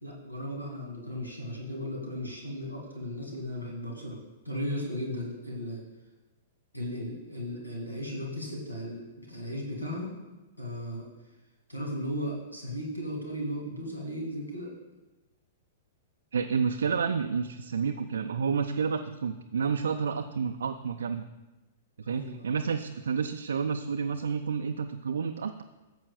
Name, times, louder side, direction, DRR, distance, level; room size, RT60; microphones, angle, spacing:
voice 1, 0.0-4.2 4.4-5.8 6.7-10.1 10.6-11.1 11.7-14.7 22.1-22.5, equal, 85° left, -1 dB, 2.3 m, -36 dB
voice 2, 16.3-21.3 22.1-25.6, right 6 dB, 65° right, 5 dB, 0.4 m, -30 dB
14.0 x 7.6 x 2.3 m, 1.1 s
figure-of-eight pair, 105°, 0 cm